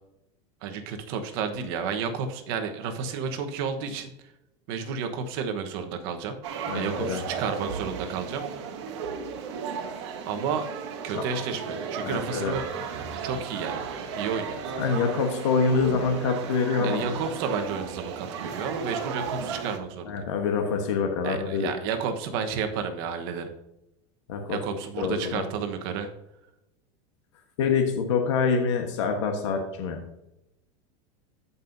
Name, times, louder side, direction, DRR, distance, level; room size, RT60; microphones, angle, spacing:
voice 1, 0.6-4.1 4.7-6.4 6.7-8.7 10.2-10.7 11.0-12.6 13.2-13.9 14.2-14.6 16.8-20.2 21.2-23.5 24.5-26.1, right 6 dB, 55° right, 6 dB, 1.1 m, -31 dB
sound 1, 6.4-19.8, right 6 dB, 75° right, 1.4 m, -34 dB
voice 2, 6.7-7.2 11.1-11.2 12.0-12.5 14.8-17.1 20.0-21.7 24.3-24.6 25.0-25.5 27.6-30.0, left 5 dB, 85° left, 3 dB, 1.3 m, -26 dB
13.5 x 5.5 x 2.7 m, 0.87 s
supercardioid pair, 165°, 15 cm